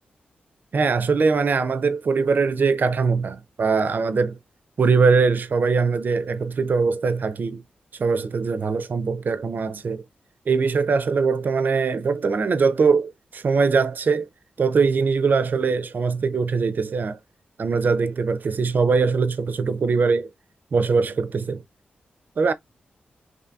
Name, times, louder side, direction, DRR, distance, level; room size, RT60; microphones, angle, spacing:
voice 1, 0.7-4.4 4.8-7.6 8.0-10.0 10.5-14.3 14.6-17.2 17.6-20.3 20.7-21.6 22.4-22.5, right 4 dB, 55° right, 0.4 m, -21 dB
2.6 x 2.6 x 2.2 m
cardioid pair, 50°, 4 cm